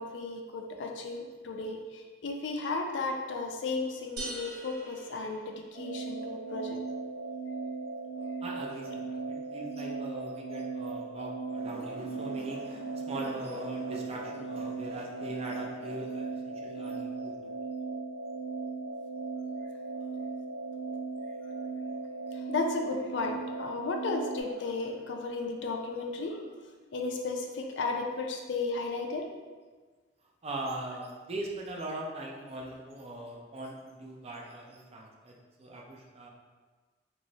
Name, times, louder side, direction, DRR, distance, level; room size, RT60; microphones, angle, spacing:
voice 1, 0.0-6.8 22.3-26.4 26.9-29.2, left 3 dB, 75° left, 2 dB, 0.4 m, -34 dB
sound 1, 4.2-6.0, right 2 dB, 60° right, 0.8 m, -43 dB
sound 2, 5.7-24.4, right 4 dB, 85° right, 1.1 m, -37 dB
voice 2, 8.4-17.7 30.4-36.3, right 1 dB, 35° right, 0 dB, 0.4 m, -41 dB
3.0 x 3.0 x 2.7 m, 1.4 s
head